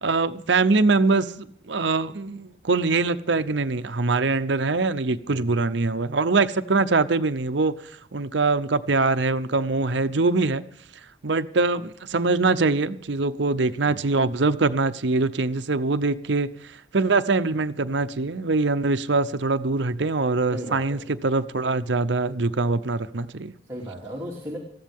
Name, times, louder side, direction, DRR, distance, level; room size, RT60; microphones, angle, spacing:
voice 1, 0.0-7.7 8.1-10.6 11.2-16.5 16.9-23.5, right 3 dB, 65° right, 0.7 m, -23 dB
voice 2, 5.3-5.6 13.8-14.0 20.5-21.0 23.7-24.6, equal, 15° right, 3.0 m, -36 dB
20.0 x 14.5 x 3.6 m
head